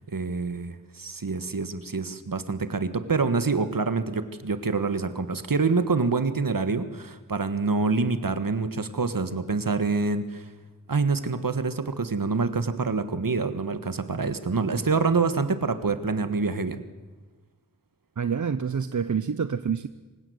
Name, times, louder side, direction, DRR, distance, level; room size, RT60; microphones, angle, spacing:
voice 1, 0.1-10.5 10.9-16.8, right 4 dB, 75° right, 11 dB, 1.5 m, -26 dB
voice 2, 18.2-19.9, right 6 dB, 60° right, 13 dB, 0.7 m, -27 dB
26.5 x 16.0 x 7.9 m, 1.2 s
wide cardioid pair, 50°, 34 cm